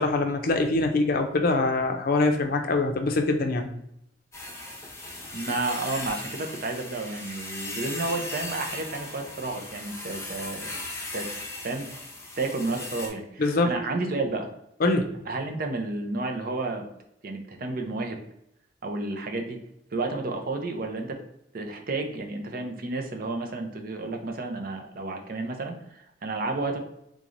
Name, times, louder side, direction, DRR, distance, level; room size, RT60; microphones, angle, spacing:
voice 1, 0.0-3.7 13.4-13.8 14.8-15.1, left 2 dB, 55° left, 5 dB, 0.5 m, -24 dB
sound 1, 4.3-13.1, left 2 dB, 15° left, 0.7 m, -37 dB
voice 2, 5.3-10.7 11.1-11.3 11.6-11.9 12.4-14.5 15.3-16.8 17.2-18.2 18.8-19.6 19.9-21.2 21.5-26.8, right 2 dB, 55° right, 4 dB, 0.6 m, -31 dB
3.7 x 3.1 x 2.5 m, 0.77 s
head